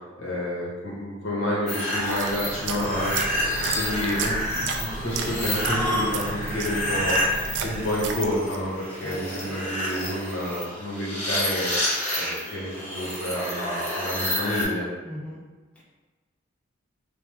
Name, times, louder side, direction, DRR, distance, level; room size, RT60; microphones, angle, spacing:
voice 1, 0.2-3.3 3.7-7.4 7.6-11.7 12.1-14.8, left 1 dB, 80° left, -5 dB, 1.2 m, -29 dB
sound 1, 1.7-14.6, left 1 dB, 35° left, 1.0 m, -29 dB
sound 2, 2.0-8.7, right 4 dB, 60° right, 0.3 m, -33 dB
voice 2, 8.9-9.5 15.0-15.4 15.7-15.8, left 1 dB, 5° left, -7 dB, 0.5 m, -40 dB
3.5 x 2.3 x 3.3 m, 1.3 s
head